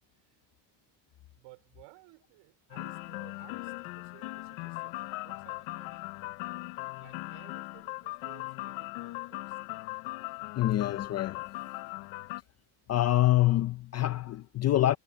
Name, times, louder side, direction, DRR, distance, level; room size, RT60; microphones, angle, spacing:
voice 1, 1.3-6.0 7.0-9.6, right 22 dB, 85° right, 4.8 m, -57 dB
sound 1, 2.7-12.4, left 22 dB, 75° left, 0.8 m, -39 dB
voice 2, 10.6-11.5 12.9-15.0, left 14 dB, 35° left, 0.5 m, -26 dB
cardioid pair, 155°, 49 cm